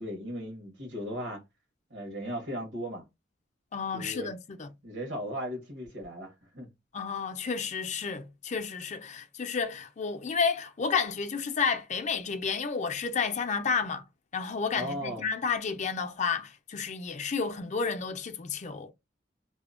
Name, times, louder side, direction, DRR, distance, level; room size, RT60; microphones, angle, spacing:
voice 1, 0.0-1.4 1.9-3.0 3.9-4.3 4.8-6.7 14.7-15.2, equal, 80° right, 1.2 m, -37 dB
voice 2, 3.7-4.7 6.9-14.1 14.3-18.9, left 5 dB, 40° left, 0.4 m, -31 dB
2.7 x 2.1 x 2.4 m
head